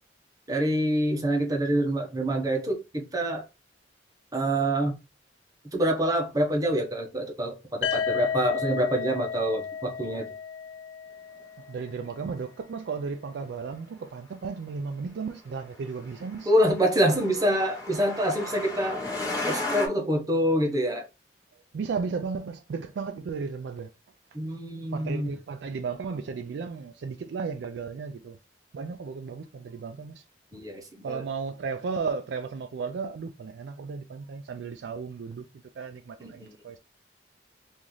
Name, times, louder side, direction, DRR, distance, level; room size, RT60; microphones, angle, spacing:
voice 1, 0.5-3.4 4.3-4.9 5.6-10.3 16.5-19.0 19.5-21.1 24.3-25.3 30.5-31.2 36.2-36.5, right 1 dB, 20° right, 0.8 m, -26 dB
sound 1, 7.8-11.7, left 7 dB, 90° left, 0.3 m, -32 dB
voice 2, 11.4-16.5 21.7-23.9 24.9-28.4 28.7-30.2 31.0-35.5 35.8-36.8, right 5 dB, 80° right, 0.3 m, -34 dB
Truck, 15.7-19.9, left 2 dB, 20° left, 1.0 m, -34 dB
3.0 x 2.5 x 3.8 m
head